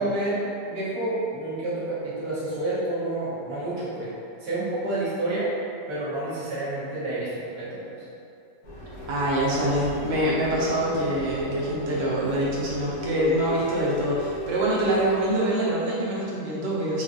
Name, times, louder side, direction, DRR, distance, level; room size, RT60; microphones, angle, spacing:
voice 1, 0.0-4.1 4.4-5.5 5.9-8.0, right 2 dB, 45° right, -10 dB, 1.0 m, -29 dB
sound 1, 8.6-15.4, left 1 dB, 65° left, 1.3 m, -34 dB
voice 2, 9.1-17.0, right 1 dB, 80° right, -6 dB, 1.3 m, -25 dB
4.3 x 2.4 x 2.5 m, 2.6 s
omnidirectional pair, 1.8 m